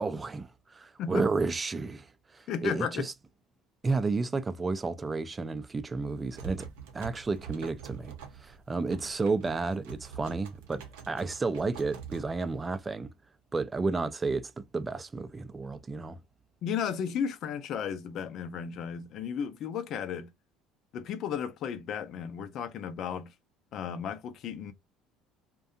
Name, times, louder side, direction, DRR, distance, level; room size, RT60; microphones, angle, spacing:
voice 1, 0.0-3.1 3.8-6.7 6.9-13.1 13.5-16.2, right 3 dB, 25° right, 0.4 m, -32 dB
voice 2, 2.5-3.1 16.6-20.3 20.9-23.3 23.7-24.7, left 8 dB, 60° left, 0.5 m, -34 dB
sound 1, 6.0-12.9, right 8 dB, 85° right, 0.6 m, -46 dB
2.6 x 2.2 x 2.4 m
supercardioid pair, 80°, 0 cm